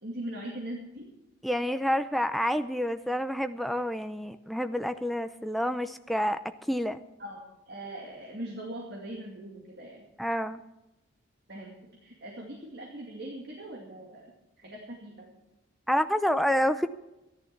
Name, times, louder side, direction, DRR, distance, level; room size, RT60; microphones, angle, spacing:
voice 1, 0.0-1.1 7.2-10.1 11.5-15.3, right 1 dB, 50° right, -2 dB, 2.4 m, -41 dB
voice 2, 1.4-7.0 10.2-10.6 15.9-16.9, equal, ahead, 9 dB, 0.5 m, -28 dB
14.0 x 11.5 x 5.9 m, 0.95 s
head